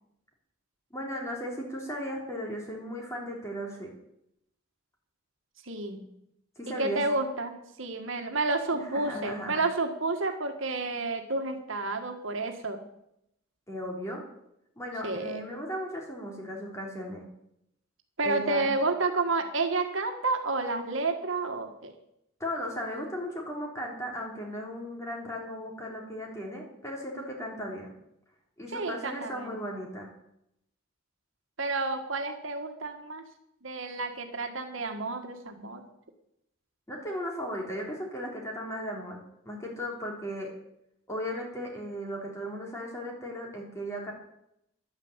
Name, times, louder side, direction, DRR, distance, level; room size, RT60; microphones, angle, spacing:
voice 1, 0.9-3.9 6.6-7.0 8.7-9.6 13.7-14.2 14.8-17.2 18.2-18.7 22.4-27.9 28.6-30.1 36.9-40.5 41.1-44.1, equal, 15° left, -1 dB, 3.4 m, -36 dB
voice 2, 5.7-6.0 6.7-12.8 15.0-15.4 18.2-21.9 28.7-29.5 31.6-33.2 33.6-35.8, right 3 dB, 65° right, 4 dB, 1.7 m, -30 dB
11.5 x 9.8 x 8.0 m, 0.80 s
head